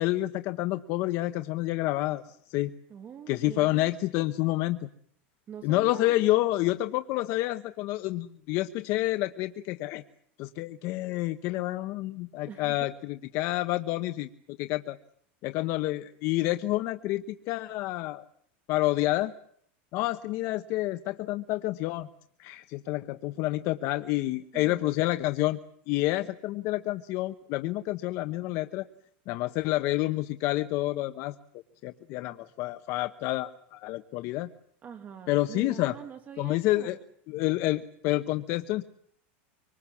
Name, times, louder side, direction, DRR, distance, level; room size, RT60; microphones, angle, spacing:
voice 1, 0.0-2.7 3.3-4.8 5.6-10.0 10.4-15.0 15.4-18.2 18.7-19.3 19.9-22.1 22.4-25.6 25.9-28.9 29.3-31.3 31.8-34.5 35.3-35.9 36.4-37.0 37.3-38.8, left 17 dB, 50° left, 10 dB, 1.0 m, -29 dB
voice 2, 2.9-3.9 5.5-6.2 12.4-12.8 24.5-24.9 34.8-37.0, right 8 dB, 25° right, 6 dB, 2.3 m, -44 dB
25.5 x 25.0 x 7.3 m, 0.65 s
supercardioid pair, 145°, 6 cm